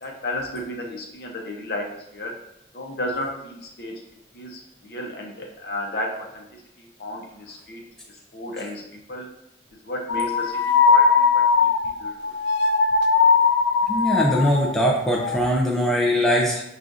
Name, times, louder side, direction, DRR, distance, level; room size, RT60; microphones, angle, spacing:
voice 1, 0.0-1.9 2.1-2.3 2.7-3.9 4.3-6.5 6.8-7.8 8.3-8.8 9.1-9.3 9.8-10.5 10.8-11.3 11.6-11.7 12.0-12.1, left 1 dB, 55° left, 0 dB, 0.7 m, -32 dB
sound 1, 10.1-14.7 15.1-15.4, left 5 dB, 75° left, 0.3 m, -19 dB
voice 2, 13.9-16.6, equal, ahead, -3 dB, 0.4 m, -21 dB
6.1 x 2.4 x 2.6 m, 0.79 s
head